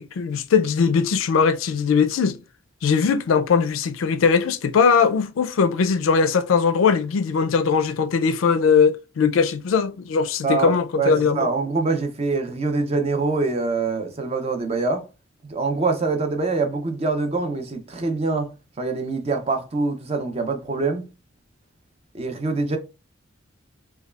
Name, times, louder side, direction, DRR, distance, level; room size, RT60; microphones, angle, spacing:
voice 1, 0.0-2.4 2.8-11.5, left 5 dB, 90° left, 0.4 m, -20 dB
voice 2, 10.4-15.0 15.4-18.5 18.8-21.1 22.1-22.8, right 3 dB, 30° right, 0.5 m, -24 dB
5.1 x 2.3 x 2.3 m
head